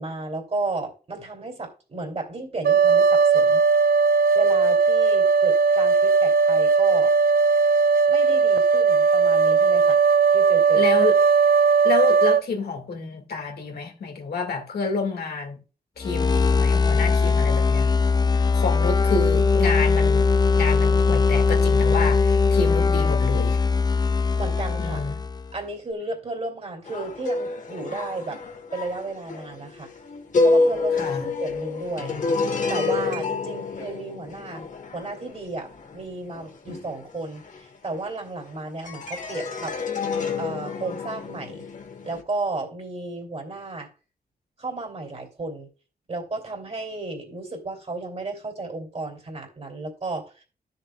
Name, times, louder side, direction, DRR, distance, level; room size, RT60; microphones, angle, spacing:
voice 1, 0.0-3.6 4.3-7.1 8.1-10.0 10.3-10.8 24.3-25.0 25.5-28.4 28.7-29.9 30.4-32.2 32.7-34.7 34.9-39.8 40.4-41.7 42.0-43.9 44.6-45.7 46.1-50.4, right 3 dB, 40° right, 2.9 m, -33 dB
sound 1, 2.6-12.4, right 5 dB, 70° right, 0.4 m, -18 dB
voice 2, 10.7-11.2 11.8-15.6 16.0-18.0 18.3-23.6 24.8-25.2 30.9-31.3, left 4 dB, 90° left, 2.0 m, -29 dB
sound 2, 16.0-25.5, left 4 dB, 25° left, 0.4 m, -20 dB
sound 3, 26.8-38.4 38.8-42.2, left 3 dB, 50° left, 1.3 m, -28 dB
13.0 x 6.8 x 2.3 m
wide cardioid pair, 125°, 16 cm